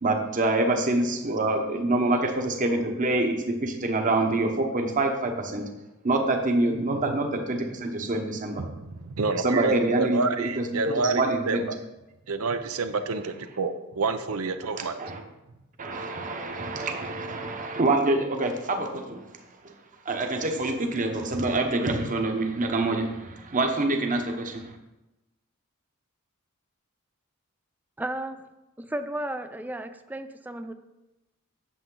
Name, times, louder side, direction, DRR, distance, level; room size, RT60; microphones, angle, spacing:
voice 1, 0.0-5.7 6.0-8.6 9.4-11.6 14.7-15.2 15.8-19.2 19.6-19.7 20.0-24.7, right 2 dB, 40° right, 3 dB, 1.0 m, -26 dB
voice 2, 6.7-7.2 8.6-11.8 12.3-15.0, right 3 dB, 80° right, 9 dB, 0.7 m, -29 dB
voice 3, 28.0-28.4 28.8-30.7, right 1 dB, 10° right, 9 dB, 0.4 m, -33 dB
8.4 x 7.2 x 3.9 m, 1.0 s
head